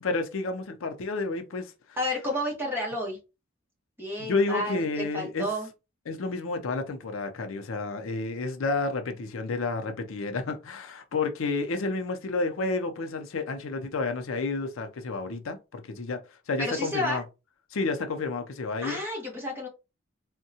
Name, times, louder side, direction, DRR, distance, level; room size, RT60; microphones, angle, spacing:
voice 1, 0.0-1.7 4.2-5.5 6.1-16.2 16.5-17.2 17.7-19.0, left 3 dB, 75° left, 0.5 m, -30 dB
voice 2, 2.0-3.2 4.0-5.7 16.6-17.2 18.8-19.7, left 1 dB, 10° right, 1.0 m, -31 dB
3.5 x 2.2 x 2.7 m
head